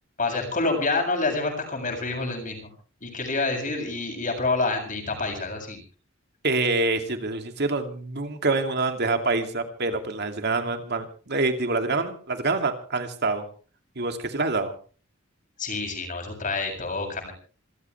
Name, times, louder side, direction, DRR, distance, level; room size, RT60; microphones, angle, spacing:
voice 1, 0.2-2.7 3.0-5.8 15.6-17.3, left 3 dB, 40° left, 2 dB, 7.4 m, -27 dB
voice 2, 6.4-13.4 14.0-14.7, right 3 dB, 55° right, 6 dB, 2.7 m, -26 dB
27.0 x 15.0 x 3.4 m, 0.39 s
head